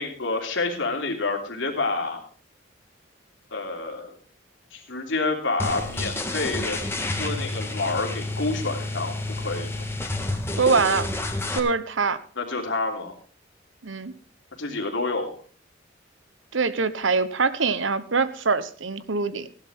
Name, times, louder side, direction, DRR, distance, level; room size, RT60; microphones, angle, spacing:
voice 1, 0.0-2.2 3.5-4.1 4.7-9.8 12.4-13.1 14.6-15.3, left 3 dB, 85° left, 1 dB, 3.1 m, -28 dB
sound 1, 5.6-11.6, left 2 dB, 15° left, 1.6 m, -30 dB
voice 2, 10.6-11.1 11.5-12.2 13.8-14.1 16.5-19.5, right 4 dB, 85° right, 14 dB, 1.0 m, -24 dB
16.0 x 11.5 x 3.7 m, 0.42 s
head